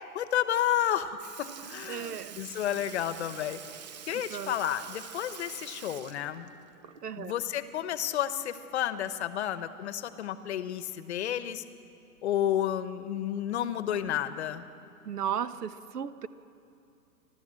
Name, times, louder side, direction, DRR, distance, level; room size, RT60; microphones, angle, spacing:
voice 1, 0.1-3.6 4.1-6.5 7.2-11.6 12.2-14.6, left 10 dB, 45° left, 12 dB, 1.1 m, -31 dB
Sink (filling or washing) / Liquid, 0.8-0.9 1.2-7.3 7.6-7.7 9.3-9.4 10.3-10.4 11.2-11.5 12.3-12.4, right 7 dB, 30° right, 0.5 m, -46 dB
voice 2, 1.9-2.4 4.1-4.6 7.0-7.4 15.0-16.3, right 8 dB, 70° right, 13 dB, 1.2 m, -35 dB
28.0 x 13.5 x 7.6 m, 2.8 s
hypercardioid pair, 145°, 48 cm